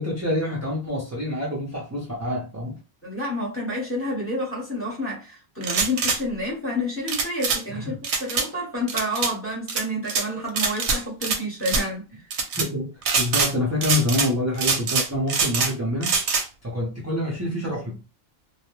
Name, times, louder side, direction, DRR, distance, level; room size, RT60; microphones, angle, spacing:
voice 1, 0.0-2.8 7.7-8.0 12.5-16.2 16.6-18.0, left 1 dB, 20° right, 0.4 m, -27 dB
voice 2, 3.0-12.2, left 1 dB, 10° left, 0.9 m, -29 dB
sound 1, 5.6-6.2 7.1-7.6 8.0-8.5 8.9-9.3 9.7-10.2 10.6-11.4 11.6-11.8 12.3-12.7 13.0-13.5 13.8-14.3 14.6-15.7 16.0-16.4, right 5 dB, 65° right, 0.8 m, -24 dB
2.3 x 2.1 x 3.1 m
omnidirectional pair, 1.3 m